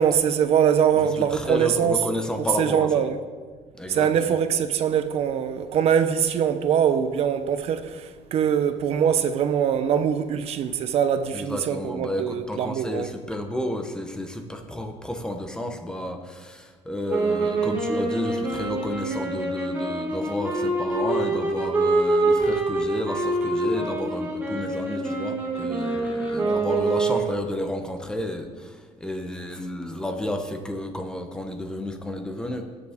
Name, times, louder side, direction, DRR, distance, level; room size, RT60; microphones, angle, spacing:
voice 1, 0.0-2.0 2.6-3.2 3.9-13.2 26.4-26.6, right 8 dB, 55° right, 0.8 m, -23 dB
voice 2, 0.9-3.0 3.8-4.4 11.3-32.7, left 1 dB, 5° left, 0.9 m, -31 dB
sound 1, 17.1-27.5, right 2 dB, 15° right, 2.2 m, -25 dB
18.5 x 7.2 x 3.6 m
cardioid pair, 160°, 13 cm